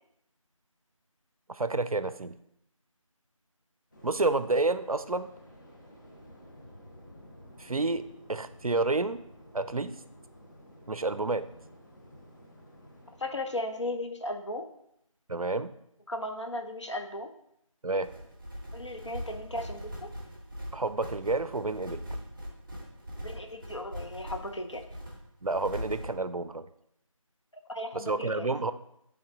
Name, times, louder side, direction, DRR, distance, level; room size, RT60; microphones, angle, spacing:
voice 1, 1.5-2.4 4.0-5.3 7.6-8.0 8.3-9.2 9.5-10.0 10.9-11.5 15.3-15.7 17.8-18.1 20.7-22.0 25.4-26.7 27.9-28.7, right 3 dB, 90° right, 12 dB, 0.6 m, -29 dB
Waves surf, 3.9-13.6, equal, 35° left, 1.2 m, -53 dB
voice 2, 13.2-14.7 16.1-17.3 18.7-20.1 23.2-24.8 27.7-28.5, left 1 dB, 55° left, 5 dB, 0.9 m, -36 dB
sound 1, 18.0-26.1, equal, 5° right, 0.8 m, -41 dB
10.0 x 3.7 x 3.8 m, 0.76 s
figure-of-eight pair, 170°, 18 cm